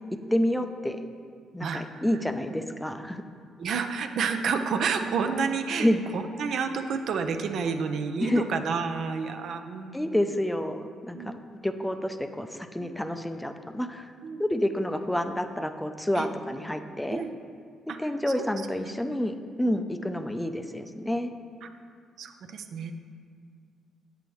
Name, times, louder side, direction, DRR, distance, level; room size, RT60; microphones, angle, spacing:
voice 1, 0.3-1.0 1.5-3.2 5.8-6.0 8.2-8.4 9.9-14.1 14.4-17.2 18.0-21.3, left 1 dB, 5° left, 8 dB, 0.4 m, -29 dB
voice 2, 1.6-2.2 3.6-10.2 11.1-11.3 12.8-12.9 14.2-14.4 16.1-16.3 17.1-17.3 17.9-18.1 18.4-18.5 18.8-19.2 19.7-19.8 21.6-21.7 22.2-23.0, right 5 dB, 70° right, 7 dB, 0.4 m, -30 dB
7.6 x 6.8 x 3.1 m, 2.2 s
supercardioid pair, 65°, 0 cm